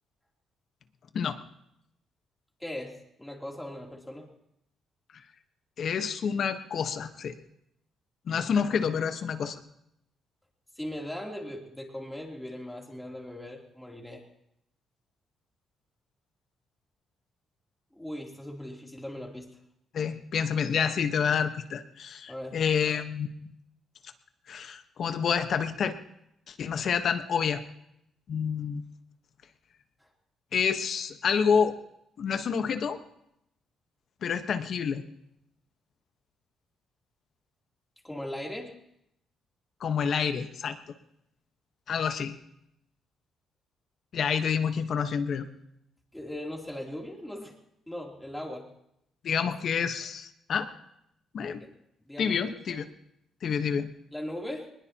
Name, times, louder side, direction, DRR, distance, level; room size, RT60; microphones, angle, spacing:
voice 1, 2.6-4.3 10.8-14.2 17.9-19.6 22.3-22.6 38.0-38.7 46.1-47.5 47.9-48.7 51.6-51.7 52.1-52.5 54.1-54.7, left 1 dB, 5° left, -1 dB, 3.2 m, -39 dB
voice 2, 5.8-7.3 8.3-9.6 19.9-23.5 24.5-25.9 26.5-27.6 28.3-28.8 30.5-31.8 32.2-33.0 34.2-35.0 39.8-40.8 41.9-42.3 44.1-45.5 49.2-50.7 51.3-51.6 52.2-52.9 53.4-53.9, left 6 dB, 60° left, 9 dB, 1.3 m, -28 dB
21.0 x 21.0 x 3.0 m, 0.79 s
cardioid pair, 90°, 0 cm